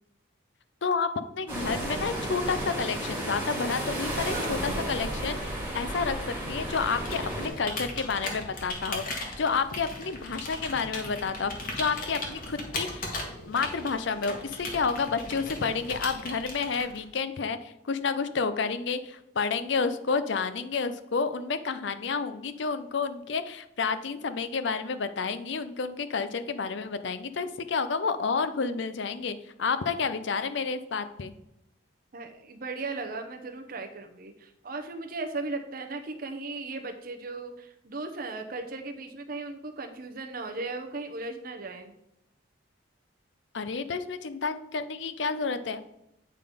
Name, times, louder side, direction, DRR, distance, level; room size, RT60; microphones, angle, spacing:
voice 1, 1.3-6.2 6.5-13.1 13.5-31.3 43.5-45.8, left 5 dB, 65° left, 12 dB, 0.5 m, -30 dB
sound 1, 1.5-7.5, right 1 dB, 10° right, 2.0 m, -33 dB
voice 2, 4.3-4.7 32.1-42.0, right 3 dB, 45° right, 5 dB, 0.7 m, -37 dB
Computer keyboard, 6.9-17.2, left 2 dB, 45° left, 1.5 m, -37 dB
8.8 x 3.8 x 5.0 m, 0.82 s
head